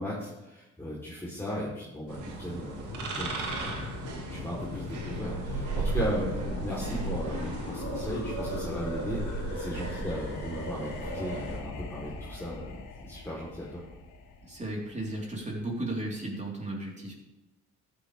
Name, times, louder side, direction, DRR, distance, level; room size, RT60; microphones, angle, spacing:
voice 1, 0.0-3.9 4.3-12.8 13.0-13.8, equal, 10° left, -7 dB, 3.4 m, -37 dB
sound 1, 2.1-11.6, right 3 dB, 80° right, 2.2 m, -35 dB
sound 2, 2.9-15.6, left 4 dB, 80° left, 2.5 m, -41 dB
voice 2, 14.4-17.1, right 1 dB, 25° right, -2 dB, 3.8 m, -35 dB
14.5 x 10.5 x 3.4 m, 1.0 s
cardioid pair, 90°, 30 cm